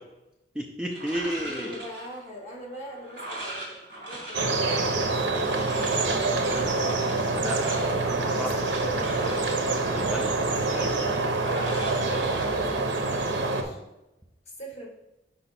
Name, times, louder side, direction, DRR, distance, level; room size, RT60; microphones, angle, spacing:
voice 1, 0.5-1.8 7.2-8.5 9.8-10.4, equal, 5° right, 1 dB, 0.4 m, -33 dB
sound 1, 0.9-13.2, right 1 dB, 50° right, 2.4 m, -40 dB
voice 2, 1.4-5.4 8.1-9.3 10.5-11.0 11.7-13.8 14.6-14.9, equal, 35° left, -1 dB, 1.6 m, -41 dB
sound 2, 4.3-13.6, right 3 dB, 80° right, 0.7 m, -26 dB
5.6 x 5.0 x 4.2 m, 0.95 s
head